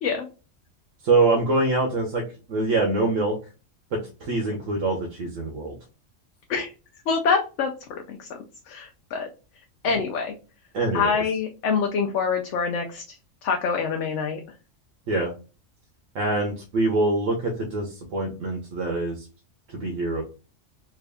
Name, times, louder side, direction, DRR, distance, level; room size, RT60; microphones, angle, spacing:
voice 1, 1.0-2.2 2.5-3.4 3.9-5.8 10.7-11.2 15.1-15.3 16.1-19.2 19.7-20.2, right 2 dB, 80° right, 0 dB, 1.2 m, -24 dB
voice 2, 7.1-8.3 8.7-9.3 9.8-10.3 10.9-13.2 13.4-14.4, left 5 dB, 70° left, 3 dB, 0.9 m, -25 dB
3.4 x 2.4 x 3.3 m, 0.33 s
omnidirectional pair, 1.3 m